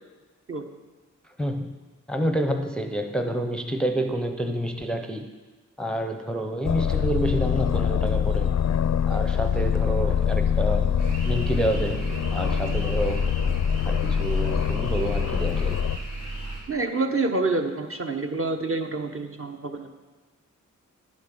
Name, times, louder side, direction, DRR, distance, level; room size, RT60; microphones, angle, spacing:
voice 1, 1.4-1.7 2.1-5.3 5.8-8.5 9.1-10.9 11.3-13.3 13.8-15.8, right 1 dB, 5° left, 6 dB, 0.6 m, -28 dB
Aircraft, 6.6-16.0, left 8 dB, 60° left, 0.4 m, -24 dB
sound 1, 11.0-16.6, right 2 dB, 80° right, 3.7 m, -33 dB
voice 2, 16.7-19.9, right 3 dB, 45° right, 4 dB, 1.1 m, -27 dB
9.7 x 8.6 x 6.8 m, 1.3 s
wide cardioid pair, 95°, 31 cm